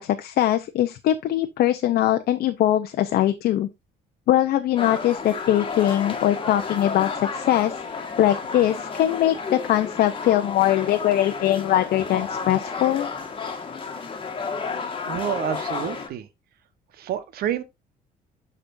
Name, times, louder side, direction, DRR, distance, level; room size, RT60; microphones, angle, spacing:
voice 1, 0.0-3.7 4.3-7.8 8.2-13.1, left 12 dB, 65° left, 0.7 m, -21 dB
sound 1, 4.8-16.1, left 5 dB, 30° left, 1.6 m, -32 dB
voice 2, 15.1-16.3 16.9-17.6, right 10 dB, 65° right, 1.1 m, -28 dB
12.5 x 4.2 x 2.6 m
cardioid pair, 110°, 17 cm